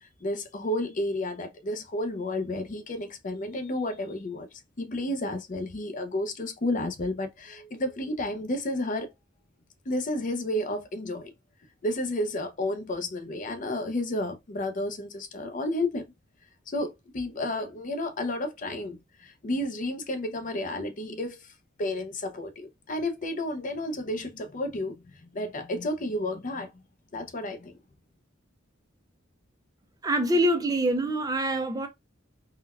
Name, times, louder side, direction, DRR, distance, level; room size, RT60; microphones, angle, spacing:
voice 1, 0.0-4.5 4.8-9.1 9.9-11.3 11.8-16.0 16.7-21.5 21.8-25.0 25.3-26.7 27.1-27.8, left 1 dB, 40° left, 0.6 m, -31 dB
voice 2, 30.0-31.9, right 1 dB, 20° right, 0.4 m, -25 dB
3.7 x 2.2 x 2.3 m
head